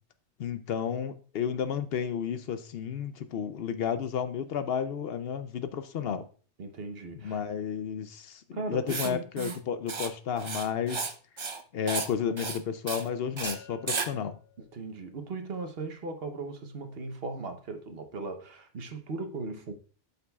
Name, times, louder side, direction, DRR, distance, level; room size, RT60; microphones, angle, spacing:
voice 1, 0.4-6.3 7.1-11.1 11.7-14.4, left 7 dB, 65° left, 0.8 m, -32 dB
voice 2, 6.6-7.4 8.5-9.5 14.7-19.7, right 3 dB, 60° right, 1.1 m, -38 dB
Writing, 8.9-9.1 9.4-9.6 9.9-10.1 10.4-11.1 11.4-11.6 11.9-12.1 12.4-12.6 12.9-13.0 13.4-13.5 13.9-14.1, right 4 dB, 35° right, 0.5 m, -33 dB
sound 1, 13.4-15.4, left 2 dB, 10° left, 0.8 m, -48 dB
12.0 x 5.4 x 2.3 m
omnidirectional pair, 1.2 m